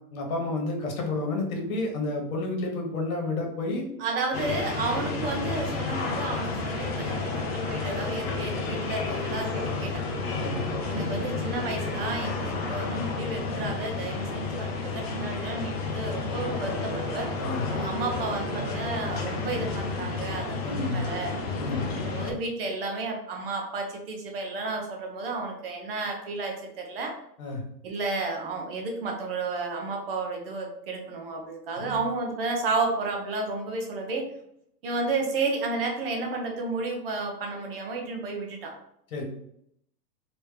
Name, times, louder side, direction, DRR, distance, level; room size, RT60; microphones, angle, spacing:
voice 1, 0.1-3.9 4.9-5.0 10.3-10.6 17.4-17.7 20.6-21.0 21.5-21.9 27.4-27.6 31.8-32.0 39.1-39.2, left 2 dB, 55° left, 1 dB, 1.3 m, -30 dB
voice 2, 4.0-10.0 10.9-17.3 17.7-21.4 21.9-27.1 27.8-34.3 34.8-38.7, right 3 dB, 35° right, 1 dB, 0.7 m, -32 dB
sound 1, 4.3-22.3, left 3 dB, 40° left, 0.6 m, -31 dB
3.4 x 2.9 x 3.3 m, 0.74 s
hypercardioid pair, 160°, 50 cm